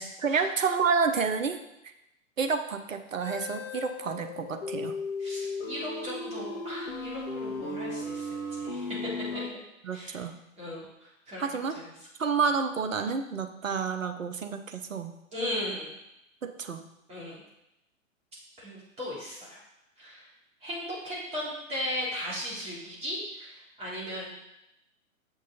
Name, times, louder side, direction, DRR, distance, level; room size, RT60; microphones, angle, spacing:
voice 1, 0.0-1.6 2.4-5.0 9.8-10.4 11.4-11.8 12.2-15.1 16.4-16.8, right 5 dB, 70° right, 8 dB, 0.9 m, -29 dB
sound 1, 3.2-9.5, left 2 dB, 40° left, 1.8 m, -36 dB
voice 2, 5.2-9.0 9.9-10.2 10.6-11.9 15.3-15.9 17.1-17.4 18.6-19.6 20.0-20.3 20.6-24.3, left 1 dB, 15° right, -6 dB, 3.0 m, -37 dB
7.5 x 6.5 x 4.1 m, 0.87 s
figure-of-eight pair, 115°, 41 cm